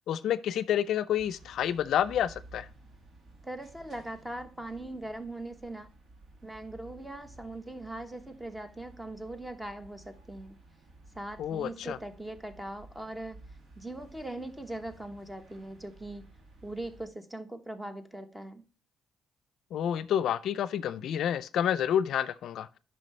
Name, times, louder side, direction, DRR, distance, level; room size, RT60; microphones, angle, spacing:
voice 1, 0.0-2.7 11.4-12.0 19.7-22.7, left 10 dB, 75° left, 0.4 m, -29 dB
sound 1, 1.2-17.1, right 2 dB, 55° right, 2.0 m, -54 dB
voice 2, 3.4-5.9 6.4-10.6 11.1-13.4 13.7-16.2 16.6-18.6, right 1 dB, 10° right, 1.1 m, -40 dB
9.1 x 5.7 x 3.2 m
cardioid pair, 90°, 0 cm